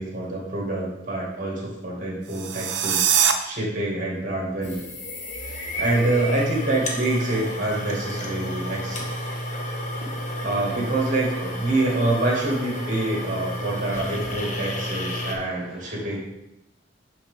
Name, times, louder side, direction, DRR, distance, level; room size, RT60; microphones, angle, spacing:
voice 1, 0.0-3.1 3.4-4.9 5.8-9.1 10.4-16.2, right 2 dB, 45° right, -3 dB, 2.0 m, -26 dB
sound 1, 2.2-3.3, right 8 dB, 75° right, 0.6 m, -22 dB
sound 2, 4.6-15.4, equal, 40° left, 1.0 m, -31 dB
voice 2, 9.9-10.5 14.7-16.2, equal, ahead, -7 dB, 1.1 m, -49 dB
6.3 x 5.8 x 3.5 m, 0.89 s
head